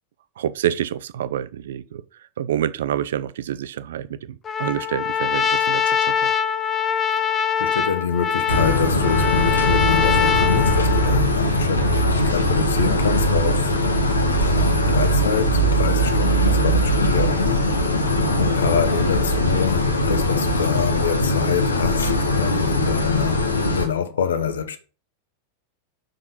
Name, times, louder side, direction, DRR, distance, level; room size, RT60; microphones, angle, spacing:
voice 1, 0.4-2.0 2.4-6.3, right 10 dB, 60° right, 0.6 m, -27 dB
Trumpet, 4.4-11.2, left 8 dB, 20° left, 0.7 m, -23 dB
voice 2, 7.6-17.6 18.4-23.4 23.8-24.8, left 7 dB, 65° left, 1.1 m, -26 dB
sound 1, 8.5-23.9, equal, 80° left, 1.4 m, -20 dB
5.9 x 5.2 x 5.7 m
figure-of-eight pair, 90°, 0 cm